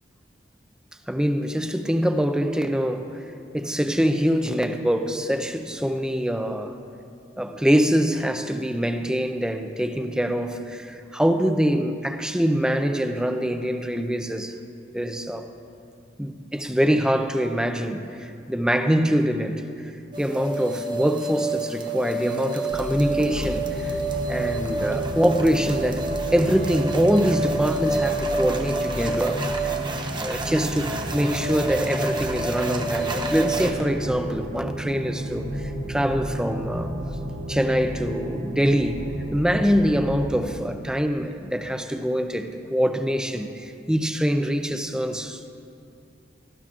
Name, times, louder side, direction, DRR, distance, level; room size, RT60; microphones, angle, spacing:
voice 1, 1.1-3.2 3.5-6.7 7.4-14.6 14.9-15.5 16.2-19.9 20.2-23.9 24.3-29.7 30.2-36.9 37.5-39.0 39.3-45.5, equal, 5° right, 0.5 m, -24 dB
sound 1, 20.1-33.7, right 2 dB, 25° right, 0.8 m, -29 dB
sound 2, 22.7-40.5, right 1 dB, 75° right, 1.4 m, -32 dB
18.0 x 13.5 x 2.5 m
head